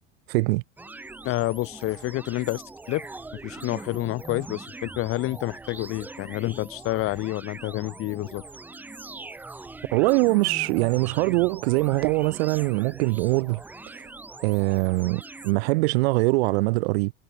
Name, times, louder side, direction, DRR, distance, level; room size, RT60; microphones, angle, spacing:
voice 1, 0.3-0.6 9.9-13.6 14.4-17.1, right 24 dB, 55° right, 0.6 m, -23 dB
sound 1, 0.8-15.5, right 3 dB, 5° right, 0.5 m, -42 dB
voice 2, 1.2-2.6 2.9-3.0 3.3-8.4, left 17 dB, 35° left, 1.1 m, -28 dB
hypercardioid pair, 115°, 38 cm